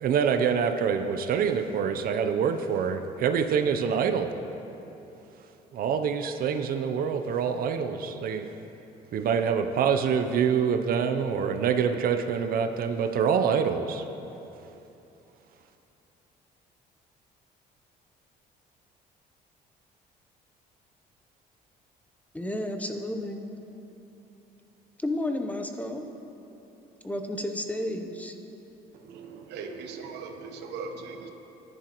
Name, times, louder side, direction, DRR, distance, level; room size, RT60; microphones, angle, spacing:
voice 1, 0.0-4.3 5.7-8.5 9.1-14.0, right 7 dB, 60° right, 7 dB, 0.6 m, -26 dB
voice 2, 22.3-23.4 25.0-26.0 27.0-28.4, left 1 dB, 10° left, 5 dB, 0.7 m, -32 dB
voice 3, 28.9-31.3, right 4 dB, 85° right, 5 dB, 1.0 m, -39 dB
14.5 x 10.5 x 3.0 m, 3.0 s
cardioid pair, 110°, 17 cm